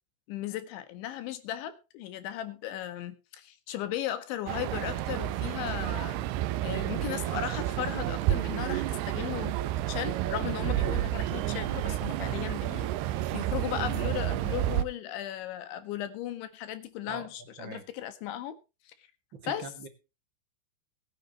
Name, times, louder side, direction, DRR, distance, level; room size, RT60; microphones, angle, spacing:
voice 1, 0.3-6.2 6.6-9.6 9.9-18.6 18.9-19.0 19.5-19.7, left 12 dB, 75° left, 11 dB, 3.9 m, -36 dB
sound 1, 4.5-14.8, right 13 dB, 75° right, 2.5 m, -30 dB
voice 2, 19.3-19.9, right 5 dB, 45° right, 7 dB, 1.6 m, -42 dB
22.0 x 9.8 x 2.9 m, 0.29 s
omnidirectional pair, 5.4 m